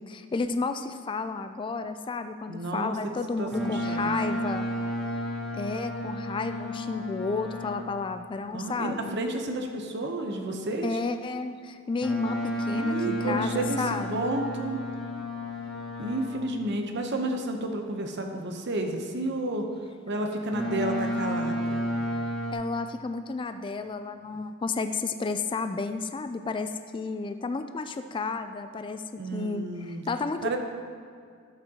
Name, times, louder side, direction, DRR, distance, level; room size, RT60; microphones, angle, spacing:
voice 1, 0.0-4.7 5.5-9.2 10.8-14.3 22.5-30.6, left 4 dB, 25° left, 9 dB, 0.3 m, -32 dB
voice 2, 2.5-3.0 3.4-4.0 8.5-11.0 12.6-14.8 16.0-19.6 20.1-21.8 29.2-30.0 30.4-30.6, right 1 dB, 55° right, 3 dB, 0.8 m, -31 dB
Boat Water vehicle, 3.5-8.0 12.0-16.5 20.5-22.5, equal, ahead, 1.1 m, -32 dB
12.0 x 8.0 x 2.9 m, 2.2 s
head